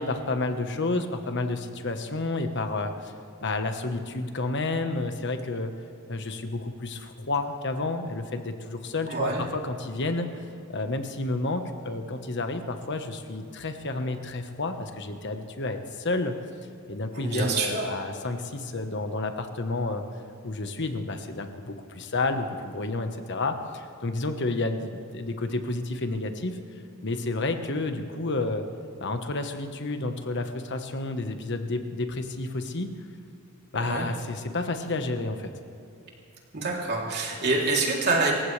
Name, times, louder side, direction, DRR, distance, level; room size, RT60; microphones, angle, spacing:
voice 1, 0.0-3.1 3.4-5.7 6.1-16.3 16.9-20.0 20.4-26.6 27.0-28.6 29.0-32.9 33.7-35.5, left 2 dB, 55° left, 6 dB, 1.3 m, -30 dB
voice 2, 9.0-9.4 17.1-17.8 33.8-34.1 36.5-38.3, right 3 dB, 50° right, -2 dB, 3.2 m, -26 dB
27.5 x 15.5 x 3.4 m, 2.7 s
head